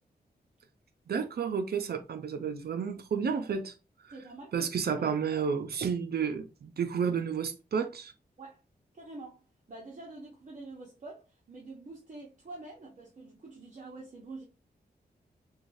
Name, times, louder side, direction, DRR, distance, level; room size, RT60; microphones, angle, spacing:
voice 1, 1.1-3.7 4.0-4.1 4.5-8.1, right 6 dB, 70° right, 0.7 m, -31 dB
voice 2, 4.1-4.7 5.0-5.1 5.3-5.4 8.4-8.6 8.9-14.4, right 2 dB, 45° right, 1.1 m, -46 dB
6.3 x 2.4 x 2.7 m
wide cardioid pair, 95°, 17 cm